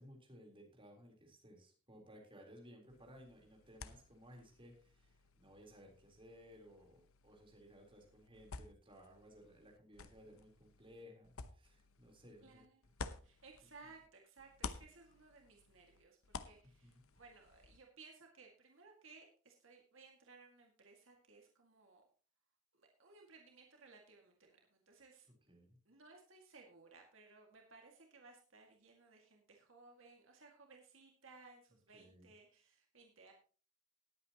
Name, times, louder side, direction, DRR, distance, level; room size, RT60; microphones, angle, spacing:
voice 1, 0.0-12.6 13.6-13.7 16.8-17.0 25.5-25.8 31.9-32.3, equal, 25° right, 0 dB, 3.8 m, -59 dB
sound 1, 2.9-14.1 14.4-17.8, left 4 dB, 90° left, 0.9 m, -53 dB
voice 2, 12.4-12.8 13.2-22.0 22.7-25.3 25.9-33.3, right 4 dB, 65° right, 1 dB, 2.1 m, -61 dB
19.5 x 8.7 x 3.0 m, 0.39 s
head